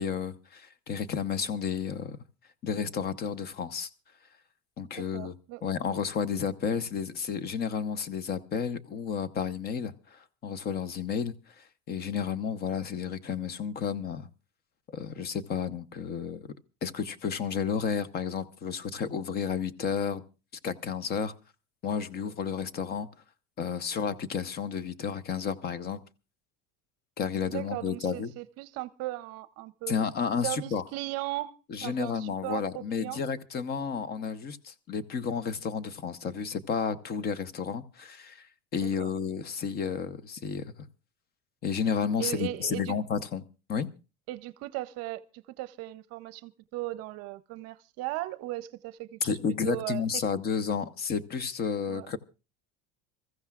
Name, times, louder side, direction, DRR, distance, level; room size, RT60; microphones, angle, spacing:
voice 1, 0.0-2.2 2.6-3.9 4.8-5.3 5.6-14.3 14.9-16.5 16.8-20.2 20.6-21.3 21.8-23.1 23.6-26.0 27.2-28.3 29.9-30.8 31.7-38.5 38.7-40.9 41.6-43.4 43.7-43.9 49.2-52.2, left 6 dB, 30° left, 0.8 m, -32 dB
voice 2, 5.0-5.6 27.4-30.0 30.4-31.5 31.8-33.2 38.8-39.1 42.2-43.0 44.3-49.4 49.6-50.0 51.9-52.1, right 17 dB, 55° right, 0.7 m, -37 dB
27.0 x 14.5 x 2.4 m
cardioid pair, 145°, 30 cm